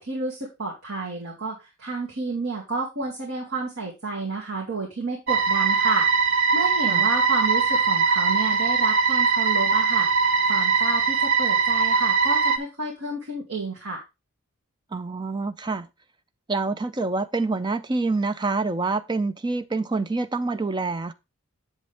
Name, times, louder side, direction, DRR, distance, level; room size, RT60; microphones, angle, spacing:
voice 1, 0.0-6.3 6.5-14.0, right 3 dB, 90° right, 2.3 m, -31 dB
sound 1, 5.3-12.6, right 5 dB, 60° right, 0.8 m, -21 dB
voice 2, 14.9-15.9 16.5-21.1, right 3 dB, 20° right, 0.4 m, -26 dB
7.7 x 7.3 x 3.5 m
head